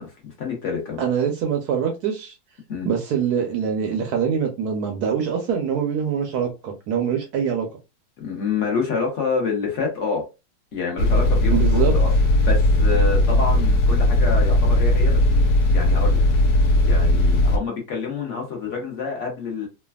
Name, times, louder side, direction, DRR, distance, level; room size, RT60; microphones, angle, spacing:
voice 1, 0.0-1.0 2.7-2.9 8.2-10.2 10.7-12.1 12.4-16.2 16.8-19.7, left 5 dB, 50° left, 0.9 m, -27 dB
voice 2, 1.0-2.4 2.8-7.7 11.5-11.9, right 7 dB, 75° right, 0.9 m, -24 dB
sound 1, 11.0-17.6, left 1 dB, 70° left, 1.2 m, -18 dB
3.2 x 2.2 x 2.2 m
omnidirectional pair, 2.2 m